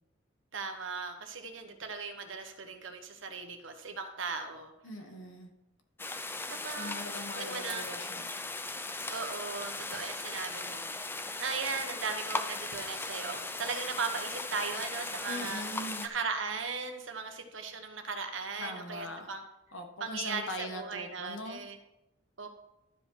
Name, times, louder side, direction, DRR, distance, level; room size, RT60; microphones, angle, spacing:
voice 1, 0.5-4.7 6.5-7.1 7.3-7.9 9.1-10.9 11.4-15.6 16.0-19.4 20.0-21.8 22.4-22.5, right 5 dB, 65° right, 6 dB, 1.2 m, -37 dB
voice 2, 4.8-5.5 6.7-8.3 15.3-16.1 18.6-19.3 19.7-21.6, left 1 dB, 70° left, 4 dB, 1.6 m, -41 dB
sound 1, 6.0-16.1, left 3 dB, 10° left, 0.5 m, -38 dB
11.5 x 5.2 x 5.8 m, 0.92 s
head